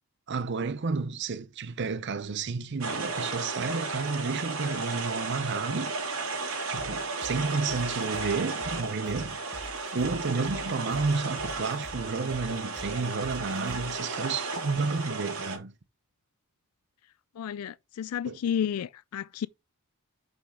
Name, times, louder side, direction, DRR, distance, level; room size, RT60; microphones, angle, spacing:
voice 1, 0.3-5.9 6.7-15.7 18.2-18.4, right 4 dB, 55° right, 0.6 m, -31 dB
Wilkies Pools Waterfalls, 2.8-15.6, right 3 dB, 80° right, 3.0 m, -34 dB
sound 1, 6.8-14.0, equal, 25° left, 1.4 m, -46 dB
voice 2, 17.4-19.5, left 8 dB, 90° left, 0.3 m, -31 dB
7.0 x 5.3 x 3.6 m
head